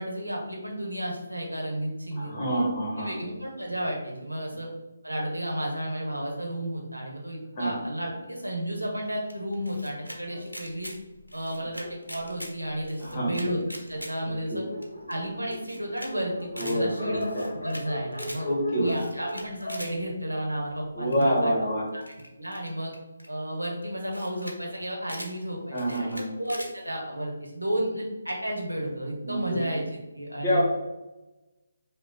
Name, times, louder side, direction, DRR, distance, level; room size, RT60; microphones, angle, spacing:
voice 1, 0.0-2.7 3.0-4.7 5.0-10.9 11.3-13.6 13.9-14.6 15.1-17.2 17.6-18.5 18.8-21.5 21.9-22.0 22.4-22.9 23.3-30.6, right 1 dB, 85° right, -1 dB, 1.0 m, -32 dB
voice 2, 2.2-3.2 7.5-7.7 13.0-13.4 14.2-14.6 16.5-17.5 18.4-18.9 20.9-21.8 25.7-26.3 29.2-29.6 30.4-30.6, equal, 30° left, -5 dB, 1.3 m, -27 dB
Camera, 9.3-10.2 10.5-11.0 11.3-12.5 12.8-14.1 14.5-14.6 14.8-14.9 15.1-15.2 15.5-16.1 16.4-16.8 17.2-17.8 18.1-18.4 18.9-19.9 21.1-21.4 22.0-23.3 23.8-23.9 24.1-24.6 24.8-25.3 25.7-26.7, equal, 90° left, 0.6 m, -41 dB
Dog, 10.2-13.2 13.9-14.0 14.3-14.4 14.6-21.0, left 1 dB, 60° left, 0.9 m, -40 dB
4.9 x 2.3 x 2.6 m, 1.0 s
figure-of-eight pair, 145°, 0 cm